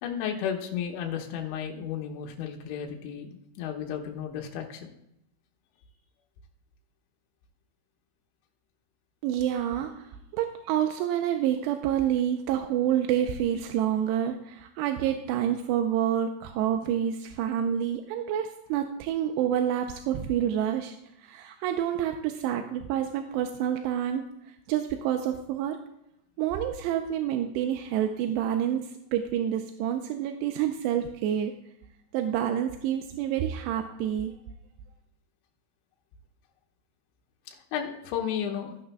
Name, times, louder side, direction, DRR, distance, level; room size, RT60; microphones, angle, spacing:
voice 1, 0.0-4.9 37.5-38.9, left 8 dB, 85° left, 1 dB, 3.3 m, -33 dB
voice 2, 9.2-9.9 10.3-21.0 21.2-24.2 24.7-25.8 26.4-28.8 29.1-31.5 32.1-34.3, right 10 dB, 85° right, 6 dB, 2.6 m, -28 dB
14.0 x 10.0 x 2.2 m, 0.80 s
omnidirectional pair, 5.2 m